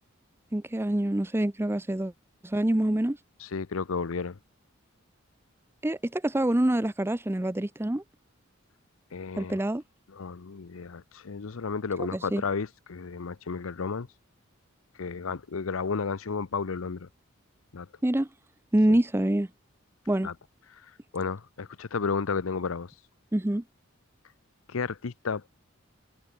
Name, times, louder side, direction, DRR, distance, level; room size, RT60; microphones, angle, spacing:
voice 1, 0.5-2.1 2.4-3.2 5.8-8.0 9.4-9.8 12.1-12.4 18.0-18.3 18.7-19.5 20.1-20.3 23.3-23.6, right 1 dB, 10° right, 0.5 m, -26 dB
voice 2, 3.4-4.4 9.1-9.6 10.1-14.1 15.0-17.1 17.7-17.9 20.2-20.3 20.7-22.9 24.7-25.5, left 5 dB, 80° left, 0.7 m, -32 dB
head